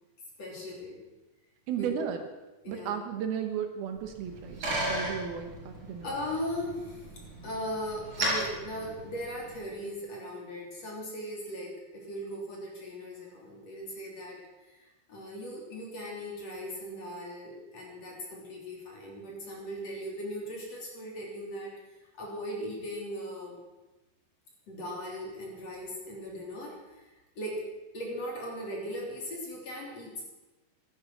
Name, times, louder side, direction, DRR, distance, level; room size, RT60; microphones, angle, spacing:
voice 1, 0.4-1.0 1.8-1.9 2.6-2.9 6.0-7.1 7.4-21.7 22.0-23.6 24.7-27.6 27.9-30.2, equal, 40° left, -2 dB, 4.1 m, -38 dB
voice 2, 1.7-2.2 2.7-6.1, right 8 dB, 75° right, 6 dB, 2.9 m, -34 dB
Bicycle, 4.0-9.7, right 1 dB, 50° right, 6.3 m, -36 dB
15.5 x 13.0 x 6.1 m, 1.1 s
omnidirectional pair, 4.7 m